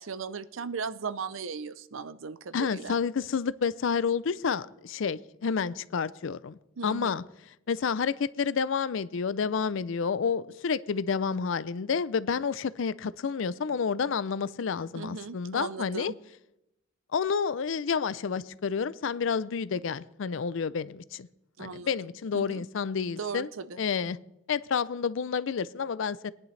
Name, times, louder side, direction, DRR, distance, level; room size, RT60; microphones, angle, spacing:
voice 1, 0.0-3.0 6.8-7.2 14.9-16.1 21.6-21.9 22.3-22.6 23.2-23.8, right 5 dB, 70° right, 0.6 m, -37 dB
voice 2, 2.5-6.6 6.8-7.2 7.7-16.1 17.1-21.3 21.6-23.5 23.8-24.2 24.5-26.3, left 6 dB, 65° left, 0.4 m, -29 dB
21.0 x 10.5 x 3.3 m
head